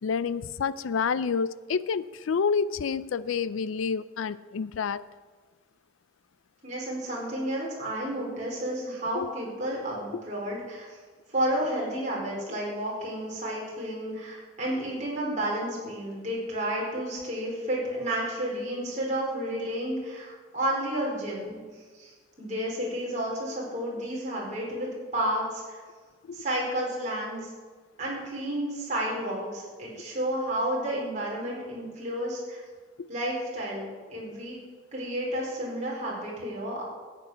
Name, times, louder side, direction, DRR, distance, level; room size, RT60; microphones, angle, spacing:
voice 1, 0.0-5.0 9.1-9.3 10.1-10.2 26.3-26.4 33.0-33.1, left 5 dB, 85° left, 16 dB, 0.4 m, -29 dB
voice 2, 6.6-10.9 11.3-21.6 21.9-25.8 26.3-27.5 28.0-32.6 33.1-34.6 34.9-36.8, right 1 dB, 35° right, -4 dB, 4.7 m, -31 dB
14.0 x 8.8 x 6.4 m, 1.5 s
head